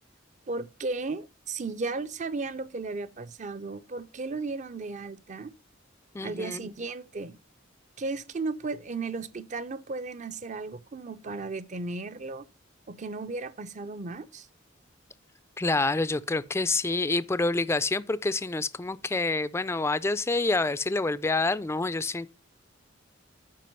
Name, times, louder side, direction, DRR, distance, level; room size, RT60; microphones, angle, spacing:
voice 1, 0.5-5.5 6.2-7.4 8.0-12.5 12.9-14.5, right 3 dB, 40° right, 0.5 m, -35 dB
voice 2, 6.1-6.7 15.6-22.3, left 3 dB, 15° left, 0.3 m, -27 dB
7.6 x 5.3 x 5.3 m
head